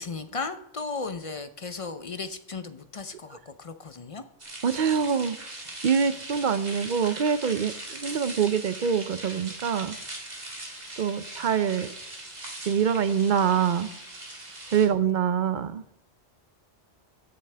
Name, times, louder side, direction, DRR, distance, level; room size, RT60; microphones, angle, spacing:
voice 1, 0.0-4.2 9.8-9.9 14.7-14.8, left 4 dB, 40° left, 10 dB, 0.6 m, -36 dB
sound 1, 4.4-14.9, right 1 dB, 35° right, 2.2 m, -40 dB
voice 2, 4.6-5.4 5.8-10.0 11.0-11.9 12.6-13.9 14.7-16.0, right 7 dB, 55° right, 13 dB, 0.6 m, -25 dB
15.5 x 9.9 x 3.4 m, 0.78 s
omnidirectional pair, 1.2 m